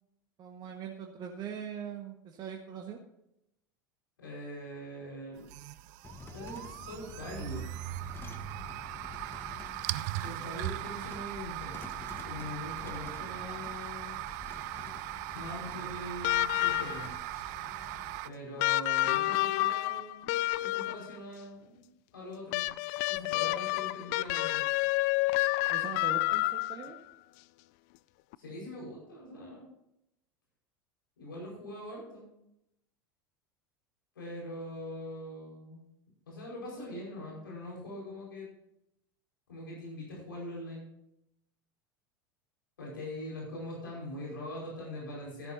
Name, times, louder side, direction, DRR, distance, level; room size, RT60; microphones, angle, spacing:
voice 1, 0.4-3.0 25.7-26.9, right 7 dB, 40° right, 2 dB, 1.4 m, -41 dB
voice 2, 4.2-5.4 6.3-7.7 10.1-11.8 12.2-14.2 15.3-17.1 18.2-21.9 22.1-22.6 23.1-24.6 28.4-29.7 31.2-32.3 34.1-35.8 36.3-38.5 39.5-40.9 42.8-45.5, left 1 dB, 80° left, -4 dB, 5.0 m, -42 dB
sound 1, 5.4-18.3, right 17 dB, 55° right, 0.5 m, -39 dB
sound 2, 6.0-18.2, left 4 dB, 20° left, 1.4 m, -48 dB
sound 3, 16.2-17.2 18.6-21.2 22.5-27.0 28.3-28.4, left 19 dB, 55° left, 0.4 m, -29 dB
13.5 x 11.0 x 2.8 m, 0.82 s
figure-of-eight pair, 80°, 11 cm